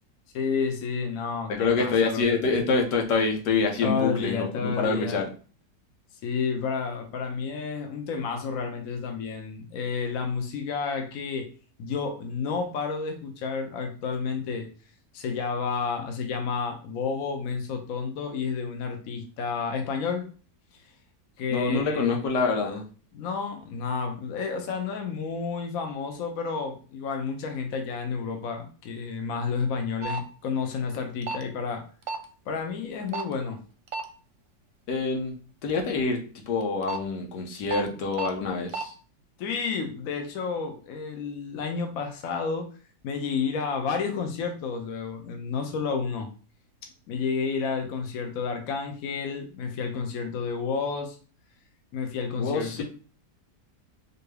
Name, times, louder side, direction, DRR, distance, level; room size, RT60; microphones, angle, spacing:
voice 1, 0.3-2.4 3.8-5.2 6.2-11.5 11.8-14.7 15.1-20.3 21.4-22.2 23.1-31.8 32.5-33.6 39.4-42.7 43.0-46.3 46.8-51.2 51.9-52.8, left 5 dB, 65° left, 4 dB, 1.0 m, -30 dB
voice 2, 1.5-5.3 21.5-22.9 34.9-35.3 35.6-36.2 36.5-38.9 52.4-52.8, left 4 dB, 90° left, 2 dB, 1.5 m, -26 dB
sound 1, 30.0-30.2 31.2-31.4 32.1-32.2 33.1-33.3 33.9-34.0 36.6-37.0 37.7-37.8 38.1-38.3 38.7-38.8, right 5 dB, 65° right, 0.9 m, -31 dB
4.5 x 2.7 x 3.2 m, 0.38 s
omnidirectional pair, 1.8 m